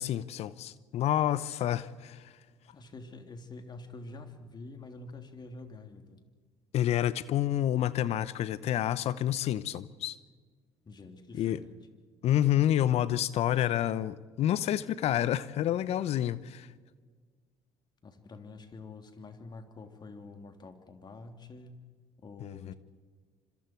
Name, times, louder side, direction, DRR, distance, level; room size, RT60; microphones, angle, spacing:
voice 1, 0.0-2.3 6.7-10.2 11.3-11.6 12.2-16.7 22.4-22.7, left 12 dB, 60° left, 0.9 m, -29 dB
voice 2, 2.7-6.2 10.8-11.8 18.0-21.8 22.2-22.7, left 3 dB, 35° left, 3.3 m, -47 dB
27.5 x 26.0 x 4.7 m
hypercardioid pair, 65°, 12 cm